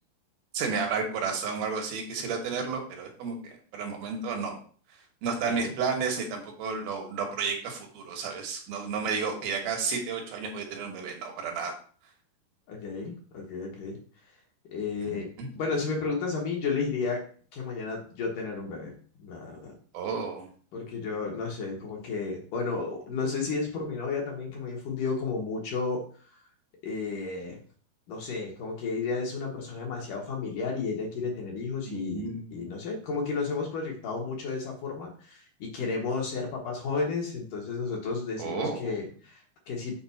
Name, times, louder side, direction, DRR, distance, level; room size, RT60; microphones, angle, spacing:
voice 1, 0.5-3.4 3.7-4.6 5.2-11.7 15.0-15.5 19.9-20.5 31.9-32.7 38.4-39.0, right 5 dB, 70° right, 2 dB, 2.9 m, -32 dB
voice 2, 12.7-14.0 14.7-17.2 17.5-18.9 19.2-19.7 20.7-26.0 26.8-27.6 28.1-40.0, left 4 dB, 60° left, -1 dB, 2.7 m, -32 dB
7.0 x 3.8 x 5.8 m, 0.43 s
omnidirectional pair, 4.7 m